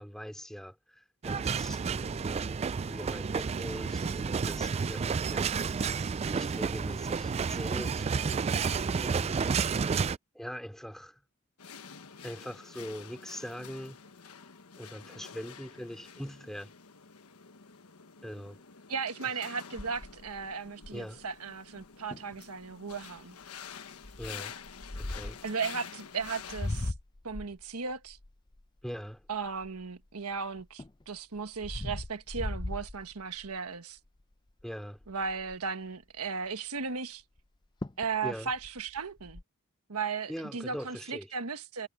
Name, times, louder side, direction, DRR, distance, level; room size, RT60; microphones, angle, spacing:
voice 1, 0.0-5.5 6.3-8.1 8.9-9.6 10.3-11.2 12.2-14.0 14.8-16.7 18.2-18.6 20.9-21.2 24.2-24.6 24.9-25.4 28.8-29.3 34.6-35.1 38.2-38.5 40.3-41.3, equal, ahead, 2.9 m, -42 dB
sound 1, 1.2-10.2, right 5 dB, 30° right, 0.3 m, -31 dB
sound 2, 11.6-26.9, left 7 dB, 75° left, 1.3 m, -48 dB
voice 2, 18.9-23.3 25.4-26.9 27.2-28.2 29.3-34.0 35.1-37.2 38.0-39.4 39.9-41.9, right 5 dB, 80° right, 1.4 m, -36 dB
sound 3, 19.8-21.2 21.8-21.9 22.1-22.4 22.9-23.2 24.0-25.5 26.2-30.1 30.6-33.6 34.1-34.3 34.6-34.7 35.0-35.7 37.4-37.5 37.8-38.1 38.5-39.4, left 2 dB, 20° left, 0.5 m, -39 dB
head